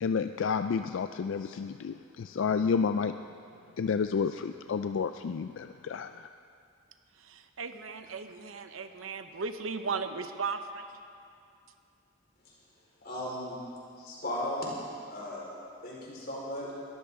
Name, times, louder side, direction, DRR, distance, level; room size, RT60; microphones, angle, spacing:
voice 1, 0.0-3.1 3.8-6.3, left 5 dB, 70° left, 9 dB, 0.4 m, -30 dB
voice 2, 7.2-10.8, right 5 dB, 85° right, 8 dB, 0.8 m, -36 dB
voice 3, 13.0-13.6 14.0-14.8 15.1-15.5 15.8-16.7, left 1 dB, 50° left, -5 dB, 4.4 m, -36 dB
22.0 x 13.5 x 3.7 m, 2.4 s
head